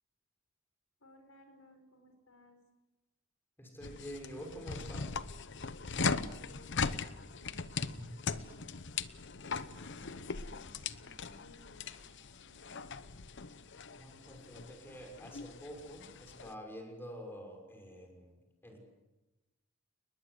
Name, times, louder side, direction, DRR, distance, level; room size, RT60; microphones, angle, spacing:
voice 1, 1.0-2.6 6.0-6.9 7.2-8.7 9.5-13.1, left 1 dB, 80° left, 6 dB, 5.1 m, -60 dB
voice 2, 3.6-5.1 8.0-8.1 14.0-18.9, equal, 10° left, 2 dB, 6.2 m, -48 dB
sound 1, 3.8-16.5, left 4 dB, 60° left, 1.0 m, -40 dB
30.0 x 20.5 x 8.2 m, 1.1 s
head